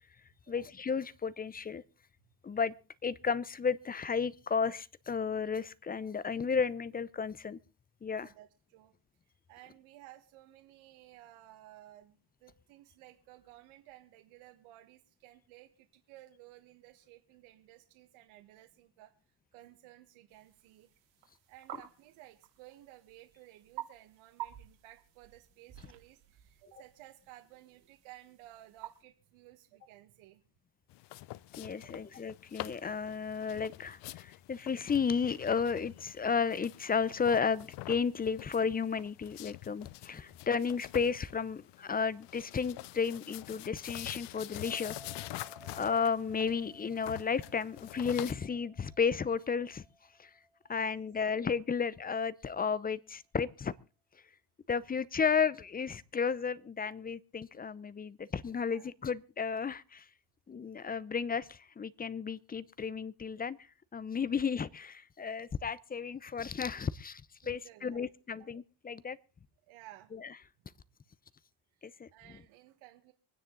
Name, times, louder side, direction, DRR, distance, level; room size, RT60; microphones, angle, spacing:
voice 1, 0.5-1.8 2.4-2.7 3.0-7.6 8.0-8.3 31.6-45.0 45.8-49.8 50.2-50.3 50.7-53.7 54.7-60.1 60.5-63.6 63.9-69.2 70.2-70.3 71.8-72.1, left 6 dB, 20° left, 0.6 m, -33 dB
voice 2, 8.1-8.9 9.3-19.1 19.5-20.9 21.5-30.4 31.8-32.1 45.6-45.8 50.9-51.0 58.7-58.9 67.4-68.0 68.3-68.5 69.7-70.1 71.8-73.1, right 15 dB, 80° right, 1.6 m, -56 dB
sound 1, 20.3-29.0, right 14 dB, 60° right, 3.4 m, -50 dB
sound 2, 30.9-48.3, left 17 dB, 60° left, 0.7 m, -46 dB
sound 3, 44.6-52.1, right 1 dB, 5° right, 3.1 m, -58 dB
25.0 x 9.7 x 3.8 m
cardioid pair, 105°, 48 cm